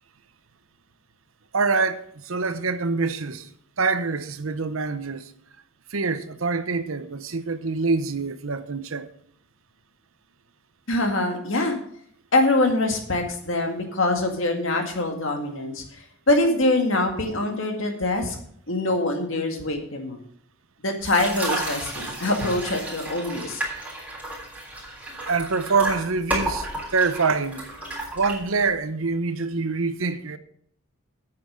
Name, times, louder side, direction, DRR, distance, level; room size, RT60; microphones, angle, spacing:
voice 1, 1.5-3.5 3.8-5.3 5.9-9.1 25.3-27.6 28.1-30.4, right 4 dB, 75° right, 0.8 m, -25 dB
voice 2, 10.9-11.8 12.3-15.8 16.3-18.4 18.7-20.2 20.8-23.6, left 2 dB, 65° left, 2.0 m, -24 dB
sound 1, 21.0-28.8, right 1 dB, 10° right, 3.4 m, -32 dB
8.9 x 7.7 x 6.2 m
head